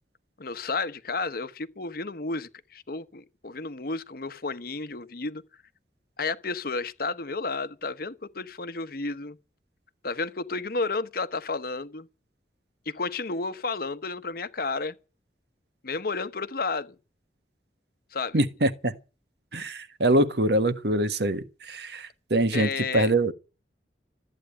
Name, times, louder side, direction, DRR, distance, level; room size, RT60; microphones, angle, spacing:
voice 1, 0.4-5.4 6.2-9.4 10.0-12.1 12.9-14.9 15.8-16.9 18.1-18.4 22.5-23.1, left 3 dB, 55° left, 1.1 m, -32 dB
voice 2, 18.3-19.0 19.5-23.3, right 1 dB, 70° right, 1.4 m, -24 dB
14.0 x 9.1 x 9.8 m
head